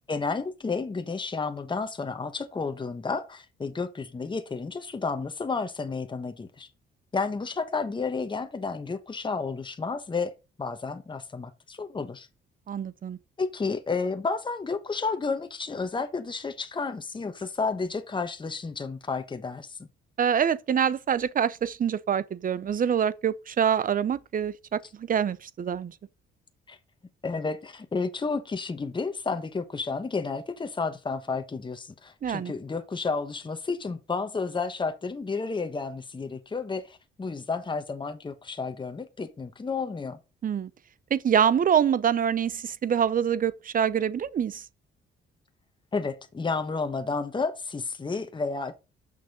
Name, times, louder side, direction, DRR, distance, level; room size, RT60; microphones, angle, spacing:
voice 1, 0.1-6.7 7.1-10.3 10.6-12.3 13.4-19.9 26.7-26.8 27.2-40.2 45.9-48.7, left 4 dB, 25° left, 1.2 m, -31 dB
voice 2, 12.7-13.2 20.2-25.9 32.2-32.5 40.4-40.7 41.1-44.7, right 8 dB, 45° right, 0.7 m, -25 dB
6.7 x 6.1 x 5.3 m
cardioid pair, 90°, 20 cm